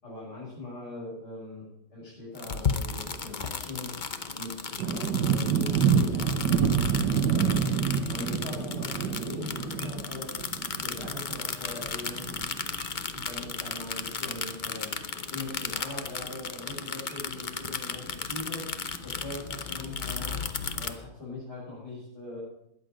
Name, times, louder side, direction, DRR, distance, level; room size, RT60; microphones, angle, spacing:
voice 1, 0.0-3.9 4.3-6.7 7.2-12.4 13.1-14.9 15.3-20.4 20.7-22.4, left 2 dB, 70° left, -8 dB, 6.5 m, -41 dB
sound 1, 2.3-20.9, left 5 dB, 40° left, 0.7 m, -35 dB
sound 2, 4.8-12.9 13.2-13.3 14.5-14.6 14.7-14.8 17.1-17.2 18.9-19.0, right 7 dB, 85° right, 1.6 m, -27 dB
21.0 x 8.3 x 5.0 m, 0.78 s
omnidirectional pair, 1.9 m